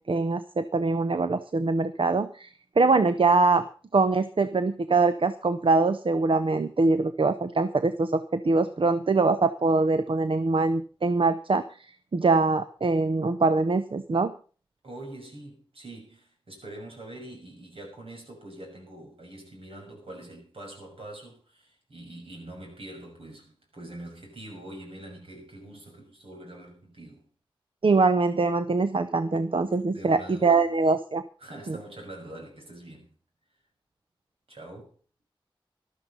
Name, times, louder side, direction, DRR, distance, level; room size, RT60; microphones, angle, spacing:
voice 1, 0.1-2.5 2.8-3.7 3.9-11.9 12.1-14.3 27.8-31.2 31.7-31.8, right 3 dB, 70° right, 0.9 m, -23 dB
voice 2, 14.8-27.3 29.8-30.6 31.4-33.1 34.5-35.0, right 1 dB, 85° right, 6.5 m, -44 dB
13.5 x 12.5 x 5.6 m
wide cardioid pair, 50°, 9 cm